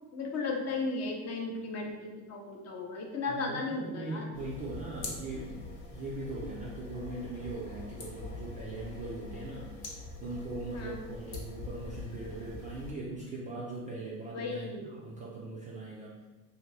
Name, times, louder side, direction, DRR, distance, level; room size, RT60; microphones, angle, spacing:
voice 1, 0.1-4.3 10.7-11.0 14.3-14.9, left 3 dB, 35° left, 1 dB, 0.6 m, -35 dB
voice 2, 3.3-9.7 10.2-16.1, right 2 dB, 20° right, -6 dB, 0.3 m, -40 dB
sound 1, 4.3-12.9, left 3 dB, 60° left, 0.9 m, -44 dB
2.8 x 2.5 x 3.0 m, 1.1 s
hypercardioid pair, 90°, 45 cm